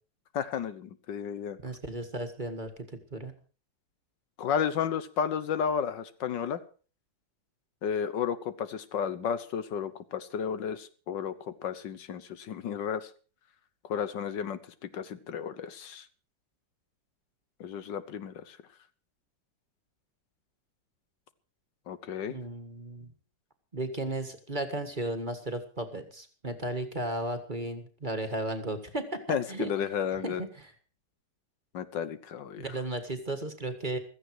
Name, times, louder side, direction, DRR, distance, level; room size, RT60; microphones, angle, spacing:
voice 1, 0.3-1.6 4.4-6.6 7.8-13.1 13.9-16.1 17.6-18.6 21.9-22.4 29.3-30.4 31.7-32.6, left 7 dB, 75° left, 13 dB, 1.6 m, -32 dB
voice 2, 1.6-3.3 22.3-23.1 23.7-29.7 30.2-30.7 32.6-34.0, right 2 dB, 25° right, 7 dB, 1.7 m, -35 dB
16.0 x 14.0 x 4.8 m, 0.39 s
omnidirectional pair, 2.0 m